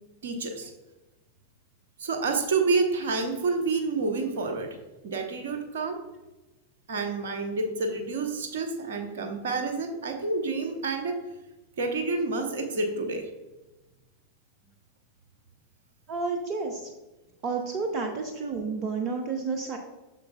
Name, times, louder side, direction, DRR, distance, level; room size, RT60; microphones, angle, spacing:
voice 1, 0.2-0.7 2.0-4.8 5.0-6.0 6.9-11.2 11.8-13.3, right 3 dB, 60° right, 5 dB, 1.0 m, -28 dB
voice 2, 16.1-16.9 17.4-19.8, right 4 dB, 35° right, 5 dB, 0.7 m, -30 dB
8.0 x 6.7 x 2.3 m, 1.1 s
figure-of-eight pair, 90°, 0 cm